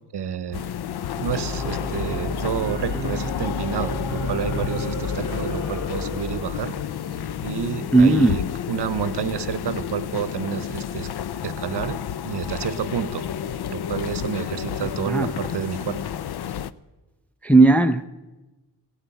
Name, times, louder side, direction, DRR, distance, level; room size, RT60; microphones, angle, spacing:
voice 1, 0.1-0.6 1.2-6.8 7.4-11.1 11.4-13.3 13.7-16.0, right 8 dB, 75° right, 0.9 m, -29 dB
sound 1, 0.5-16.7, left 9 dB, 70° left, 0.6 m, -30 dB
Singing / Musical instrument, 1.3-6.4, equal, 45° left, 4.1 m, -32 dB
voice 2, 7.9-8.4 14.8-15.3 17.4-18.1, right 2 dB, 5° left, 0.4 m, -16 dB
16.0 x 8.2 x 9.1 m
wide cardioid pair, 160°, 41 cm